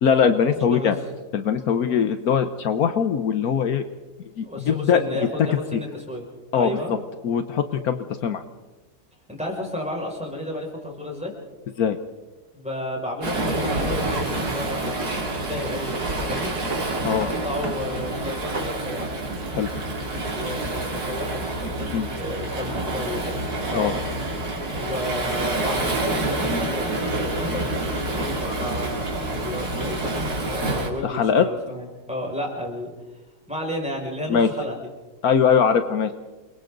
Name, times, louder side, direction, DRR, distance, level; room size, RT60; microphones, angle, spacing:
voice 1, 0.0-0.9 1.3-3.8 4.4-5.0 5.7-5.8 6.5-7.0 7.2-8.4 11.8-12.0 17.0-17.3 19.5-19.7 21.9-22.1 23.7-23.9 31.0-31.5 34.3-34.5 35.2-36.1, left 7 dB, 75° left, 9 dB, 1.4 m, -21 dB
voice 2, 4.4-6.3 6.5-6.9 9.3-11.3 12.5-16.5 17.2-19.1 20.3-21.4 21.8-23.9 24.7-30.1 30.4-32.9 33.5-34.8, left 1 dB, 5° right, -2 dB, 5.9 m, -32 dB
Waves surf, 13.2-30.9, right 2 dB, 80° right, 3.5 m, -28 dB
Drawer open or close, 13.8-14.1 14.7-15.6 15.9-17.4 17.6-17.8 18.2-18.8, right 2 dB, 35° right, 2.2 m, -36 dB
28.5 x 22.5 x 4.0 m, 1.1 s
omnidirectional pair, 1.6 m